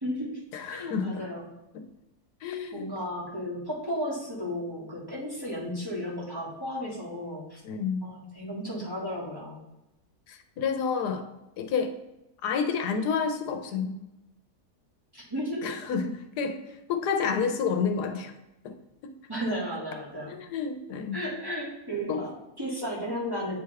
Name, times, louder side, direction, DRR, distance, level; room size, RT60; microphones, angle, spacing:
voice 1, 0.0-0.4 0.7-1.4 2.7-7.6 8.0-9.6 15.1-15.7 19.3-20.3 21.1-23.5, equal, 15° right, -6 dB, 1.6 m, -34 dB
voice 2, 0.5-1.3 2.4-2.9 7.6-8.0 10.3-11.3 11.6-11.9 12.4-14.0 15.6-16.6 16.9-18.3 18.6-18.8 20.3-21.2 22.1-22.3, left 6 dB, 85° left, 6 dB, 1.2 m, -29 dB
8.3 x 3.4 x 3.3 m, 0.95 s
omnidirectional pair, 1.7 m